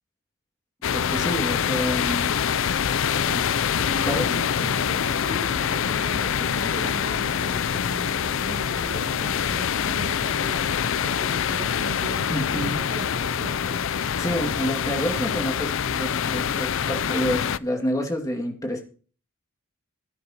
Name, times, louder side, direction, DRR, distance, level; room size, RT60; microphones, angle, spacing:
sound 1, 0.8-17.6, left 8 dB, 65° left, 0.4 m, -25 dB
voice 1, 0.9-2.3 3.8-4.3 12.3-12.8 14.2-18.8, equal, 15° left, 2 dB, 2.3 m, -28 dB
voice 2, 3.8-13.8 15.1-15.4, right 1 dB, 50° right, 2 dB, 1.8 m, -38 dB
17.5 x 9.7 x 2.9 m, 0.39 s
head